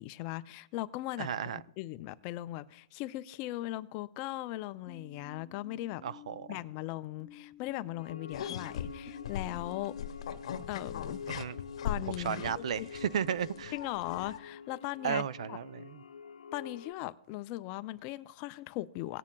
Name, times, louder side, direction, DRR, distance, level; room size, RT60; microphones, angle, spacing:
voice 1, 0.0-6.0 6.5-10.0 10.7-11.4 11.8-12.9 13.7-15.6 16.5-19.2, left 16 dB, 30° left, 0.3 m, -39 dB
voice 2, 1.2-1.6 6.0-6.5 11.3-11.6 12.2-13.7 15.0-16.0, right 8 dB, 60° right, 0.4 m, -34 dB
sound 1, 4.9-9.9, left 6 dB, ahead, 2.0 m, -54 dB
sound 2, 8.0-16.9, left 6 dB, 90° left, 0.8 m, -46 dB
sound 3, 8.3-14.4, left 8 dB, 60° left, 0.8 m, -40 dB
18.0 x 9.5 x 2.3 m
hypercardioid pair, 150°, 4 cm